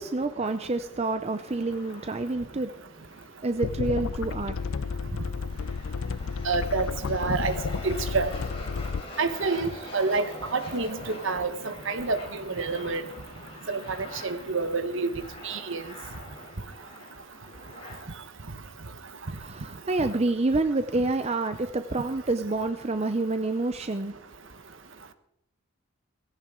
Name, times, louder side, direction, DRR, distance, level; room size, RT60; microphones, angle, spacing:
voice 1, 0.0-2.7 3.0-3.1 3.4-4.6 19.3-24.2, right 2 dB, 30° right, 9 dB, 0.6 m, -28 dB
sound 1, 1.1-18.0, left 1 dB, 25° left, 3.7 m, -45 dB
sound 2, 3.6-9.0, left 5 dB, 70° left, 0.5 m, -32 dB
voice 2, 6.4-7.5 7.8-8.3 9.2-13.0 13.7-15.1 15.4-15.8, right 4 dB, 60° right, 11 dB, 1.1 m, -28 dB
17.5 x 16.5 x 3.7 m, 0.79 s
head